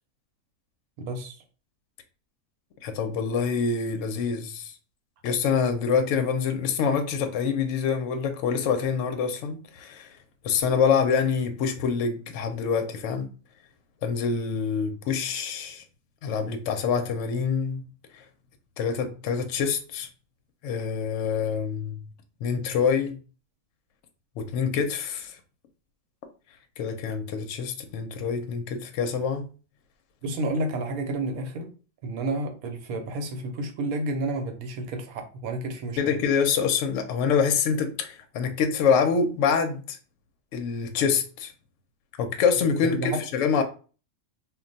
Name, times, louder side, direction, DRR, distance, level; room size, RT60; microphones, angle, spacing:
voice 1, 1.0-1.4 30.2-31.7 32.0-36.2 42.9-43.2, right 2 dB, 85° right, 1.1 m, -30 dB
voice 2, 2.8-4.7 5.2-10.1 10.4-13.3 14.0-15.8 16.2-17.8 18.8-20.1 20.6-22.0 22.4-23.2 24.4-25.4 26.8-29.5 36.0-40.0 40.5-41.5 42.2-43.6, left 6 dB, 70° left, 0.8 m, -26 dB
2.4 x 2.2 x 3.8 m
omnidirectional pair, 1.5 m